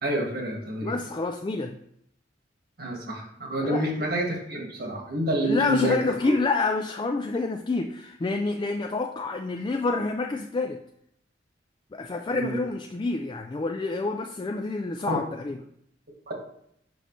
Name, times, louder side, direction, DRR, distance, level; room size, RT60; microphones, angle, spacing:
voice 1, 0.0-1.0 2.8-5.9 6.2-6.3 12.3-12.6 15.1-15.2 16.3-16.4, right 1 dB, 55° right, 0 dB, 1.6 m, -28 dB
voice 2, 0.8-1.8 3.6-3.9 5.4-10.8 11.9-15.6, left 3 dB, 25° left, 4 dB, 0.3 m, -28 dB
6.0 x 5.3 x 3.1 m, 0.71 s
head